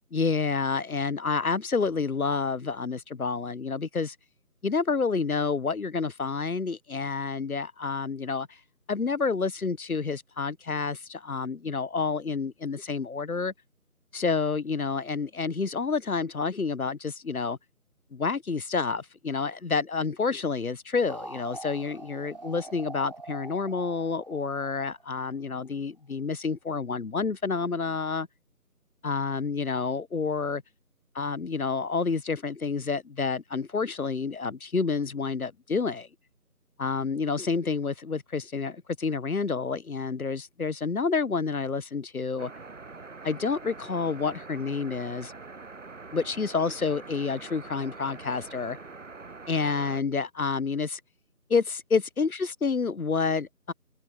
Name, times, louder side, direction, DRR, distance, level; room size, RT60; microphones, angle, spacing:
voice 1, 0.1-4.2 4.6-8.6 8.9-13.5 14.1-17.6 18.1-28.3 29.0-30.6 31.1-36.1 36.8-42.5 43.2-45.3 46.1-48.8 49.5-51.0 51.5-53.7, left 4 dB, 65° left, 0.8 m, -29 dB
sound 1, 21.1-25.6, right 2 dB, 25° right, 3.2 m, -44 dB
sound 2, 42.4-50.0, right 3 dB, 55° right, 0.5 m, -44 dB
open air
figure-of-eight pair, 170°, 46 cm